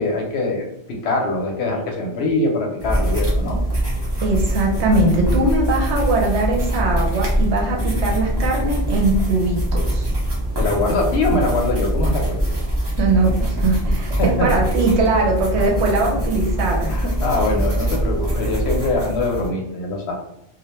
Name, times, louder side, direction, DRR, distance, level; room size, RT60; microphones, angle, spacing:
voice 1, 0.0-3.6 10.6-12.6 14.2-14.5 16.9-20.1, left 2 dB, 70° left, 1 dB, 0.8 m, -23 dB
sound 1, 2.8-19.5, right 1 dB, 30° right, 0.6 m, -23 dB
voice 2, 4.2-10.1 13.0-16.9, right 2 dB, 75° right, -1 dB, 0.9 m, -21 dB
2.2 x 2.1 x 2.9 m, 0.80 s
omnidirectional pair, 1.2 m